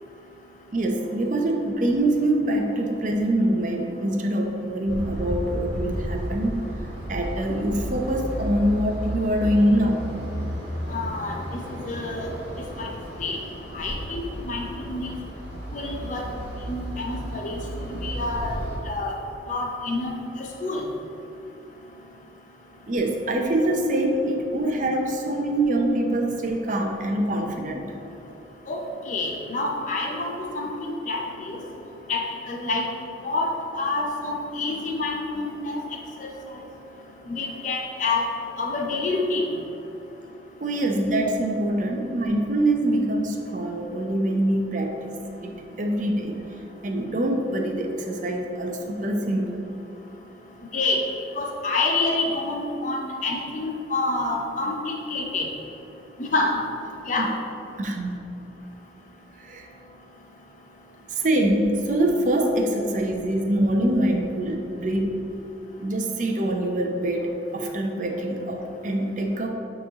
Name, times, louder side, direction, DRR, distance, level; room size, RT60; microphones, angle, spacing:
voice 1, 0.7-6.6 7.1-10.1 22.9-27.9 40.6-46.4 46.8-49.6 57.2-57.3 57.8-58.2 59.4-59.7 61.1-65.1 65.8-69.5, right 1 dB, 45° right, 2 dB, 0.6 m, -24 dB
sound 1, 4.9-18.8, equal, 60° right, 1.4 m, -33 dB
voice 2, 10.9-11.4 11.7-12.3 12.6-12.9 13.2-13.4 13.7-15.2 15.7-16.2 16.7-19.1 19.5-20.8 28.7-31.6 32.1-32.9 33.2-33.5 33.8-35.8 36.2-36.3 37.3-38.2 38.6-39.4 50.7-51.0 51.4-55.5 56.2-56.6 57.1-57.3, left 3 dB, 40° left, 0 dB, 0.6 m, -28 dB
8.5 x 3.1 x 3.6 m, 2.9 s
head